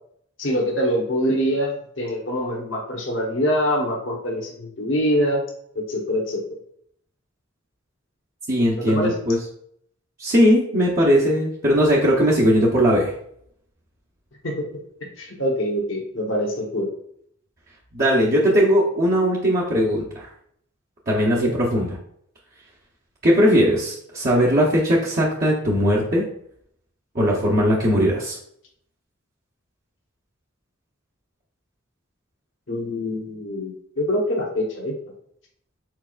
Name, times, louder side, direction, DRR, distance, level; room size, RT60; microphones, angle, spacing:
voice 1, 0.4-5.4 5.7-6.6 8.8-9.1 14.4-14.7 15.2-16.9 21.3-21.5 32.7-34.9, equal, 70° left, -1 dB, 1.2 m, -24 dB
voice 2, 8.5-9.4 10.2-13.1 17.9-20.3 21.1-22.0 23.2-26.2 27.1-28.4, equal, 45° right, -6 dB, 0.9 m, -19 dB
4.6 x 4.1 x 2.4 m, 0.67 s
head